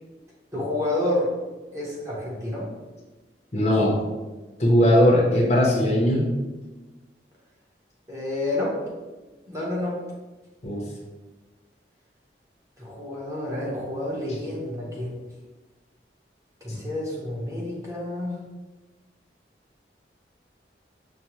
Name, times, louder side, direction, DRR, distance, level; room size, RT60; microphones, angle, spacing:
voice 1, 0.5-1.3 1.7-2.7 8.1-8.8 9.5-10.0 12.8-15.1 16.6-18.3, left 1 dB, 15° right, -5 dB, 0.8 m, -29 dB
voice 2, 3.5-4.0 4.6-6.3 10.6-10.8, left 1 dB, 40° left, -2 dB, 0.6 m, -19 dB
5.3 x 2.1 x 3.0 m, 1.2 s
head